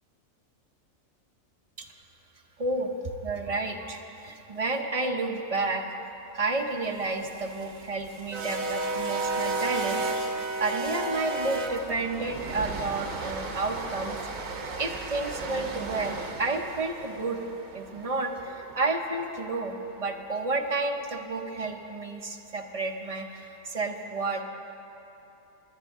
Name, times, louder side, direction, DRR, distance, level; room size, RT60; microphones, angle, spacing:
voice 1, 2.6-5.8 6.3-14.3 14.8-17.5 17.7-24.4, right 3 dB, 35° right, 3 dB, 0.7 m, -31 dB
sound 1, 7.1-19.2, right 2 dB, 85° right, 1.4 m, -34 dB
22.5 x 9.8 x 3.6 m, 3.0 s
omnidirectional pair, 1.4 m